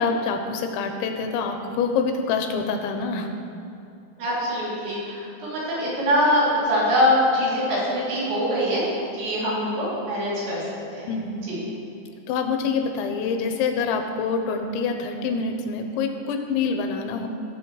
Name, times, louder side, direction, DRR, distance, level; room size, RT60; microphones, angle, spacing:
voice 1, 0.0-3.3 11.1-11.5 12.3-17.3, left 5 dB, 85° left, 5 dB, 3.0 m, -26 dB
voice 2, 4.2-8.8 9.2-10.6 10.9-11.1 11.5-11.6, equal, 70° right, -8 dB, 5.2 m, -23 dB
17.5 x 7.6 x 3.2 m, 2.7 s
omnidirectional pair, 5.4 m